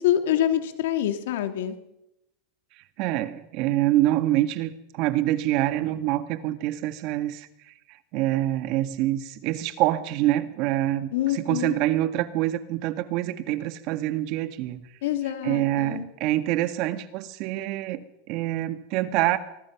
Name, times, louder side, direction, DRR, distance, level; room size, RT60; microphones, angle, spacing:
voice 1, 0.0-1.8 11.1-11.7 15.0-16.0, left 11 dB, 75° left, 7 dB, 2.8 m, -26 dB
voice 2, 3.0-7.5 7.9-14.9 15.2-19.4, right 14 dB, 50° right, 10 dB, 1.9 m, -26 dB
24.5 x 20.5 x 6.1 m, 0.85 s
supercardioid pair, 135°, 0 cm